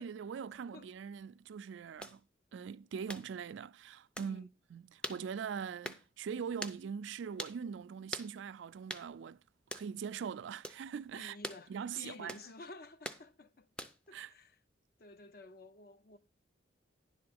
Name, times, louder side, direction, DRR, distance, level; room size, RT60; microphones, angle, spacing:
voice 1, 0.0-2.2 2.5-9.4 9.7-11.4 11.7-12.4 14.1-14.3, right 7 dB, 75° right, 0.3 m, -42 dB
sound 1, 2.0-2.2 3.1-3.3 4.2-4.3 5.0-5.2 5.8-6.0 6.6-6.8 7.4-7.6 8.1-8.3 8.9-9.1 9.7-9.9 10.6-10.8 11.4-11.6 12.3-12.5 13.0-13.2 13.8-14.1, equal, 5° left, 0.4 m, -42 dB
voice 2, 11.2-13.7 14.1-14.6 15.0-16.2, left 3 dB, 50° left, 0.5 m, -52 dB
10.5 x 3.8 x 6.9 m
head